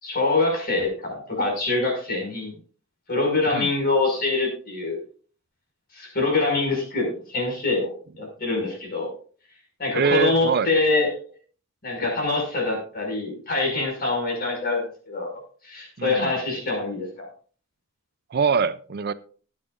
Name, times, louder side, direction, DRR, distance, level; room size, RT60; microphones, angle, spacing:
voice 1, 0.0-2.5 3.1-5.0 5.9-9.1 9.8-11.1 11.8-17.3, left 3 dB, 50° left, 5.8 m, -25 dB
voice 2, 9.9-10.7 16.0-16.3 18.3-19.1, right 5 dB, 50° right, 0.5 m, -23 dB
20.0 x 8.8 x 2.5 m
head